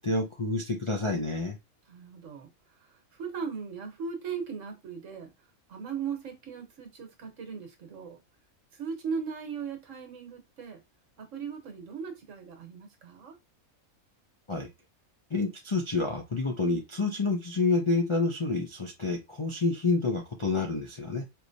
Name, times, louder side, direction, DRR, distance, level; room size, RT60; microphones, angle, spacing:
voice 1, 0.0-1.6 14.5-14.7 15.3-21.3, left 3 dB, 40° left, 0.4 m, -28 dB
voice 2, 1.9-2.5 3.1-5.3 5.7-8.2 8.7-10.8 11.2-13.4, right 6 dB, 65° right, 1.3 m, -38 dB
4.4 x 3.1 x 2.6 m
omnidirectional pair, 1.5 m